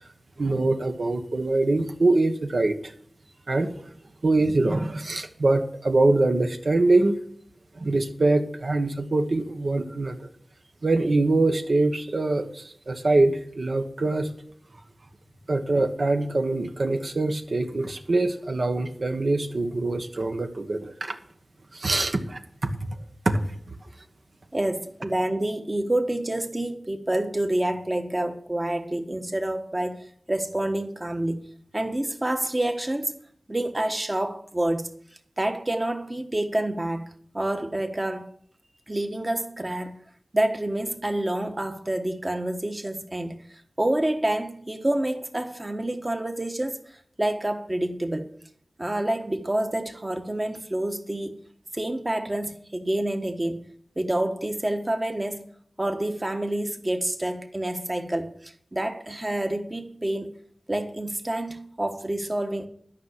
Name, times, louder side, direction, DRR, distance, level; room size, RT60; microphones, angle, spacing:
voice 1, 0.4-2.9 3.5-3.9 4.2-7.2 7.7-10.2 10.8-14.3 15.5-21.2 21.7-22.9 23.2-23.4 23.7-23.8, right 2 dB, 60° right, 1.3 m, -24 dB
voice 2, 24.5-31.4 31.7-33.1 33.5-34.9 35.4-38.3 38.9-40.0 40.3-48.3 48.8-51.4 51.7-53.6 54.0-55.5 55.8-60.3 60.7-62.7, right 1 dB, 25° right, 1.3 m, -28 dB
12.5 x 6.0 x 8.3 m
wide cardioid pair, 80°, 0 cm